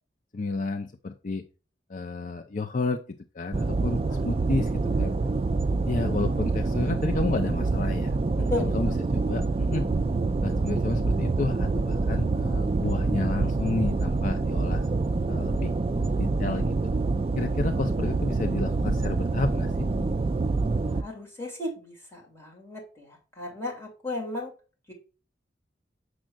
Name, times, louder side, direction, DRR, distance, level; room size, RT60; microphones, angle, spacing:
voice 1, 0.3-1.4 1.9-3.0 3.3-5.1 5.9-9.4 9.7-9.9 10.4-15.0 15.3-15.7 16.2-16.8 17.4-19.9, left 3 dB, 45° left, 5 dB, 0.5 m, -31 dB
sound 1, 3.5-21.0, right 3 dB, 30° right, 0.4 m, -26 dB
voice 2, 8.4-8.7 20.9-24.5 24.9-25.0, left 2 dB, 15° left, -1 dB, 2.3 m, -34 dB
7.4 x 6.3 x 2.3 m, 0.34 s
head